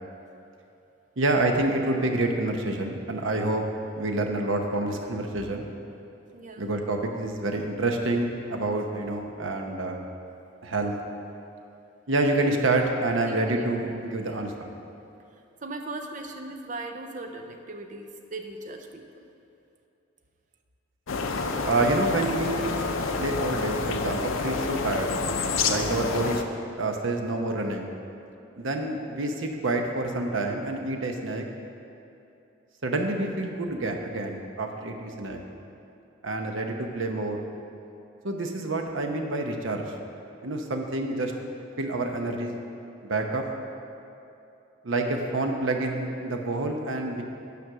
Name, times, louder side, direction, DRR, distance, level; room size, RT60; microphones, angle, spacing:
voice 1, 1.2-3.6 3.9-5.7 6.6-10.1 10.6-10.9 12.1-14.5 21.6-22.7 23.2-25.2 25.6-26.4 26.8-27.9 28.6-31.4 32.8-35.4 36.2-37.5 38.2-39.8 40.4-41.3 41.8-42.5 43.0-43.5 44.8-47.2, right 2 dB, 75° right, 3 dB, 0.9 m, -27 dB
voice 2, 6.3-6.7 13.2-13.6 14.2-14.4 15.6-19.3, right 2 dB, 40° right, 4 dB, 0.6 m, -38 dB
sound 1, 21.1-26.4, left 4 dB, 85° left, 0.6 m, -28 dB
9.4 x 5.1 x 6.1 m, 2.7 s
head